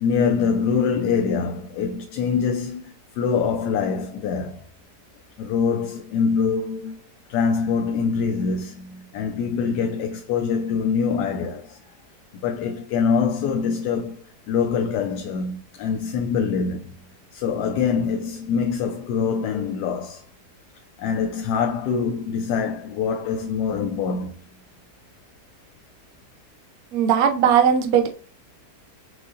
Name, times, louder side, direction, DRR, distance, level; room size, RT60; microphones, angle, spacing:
voice 1, 0.0-4.7 5.4-11.8 12.4-16.9 17.3-20.2 21.0-24.4, left 6 dB, 75° left, 1.1 m, -24 dB
voice 2, 26.9-28.1, right 8 dB, 65° right, 1.1 m, -18 dB
6.4 x 2.7 x 2.5 m
omnidirectional pair, 1.8 m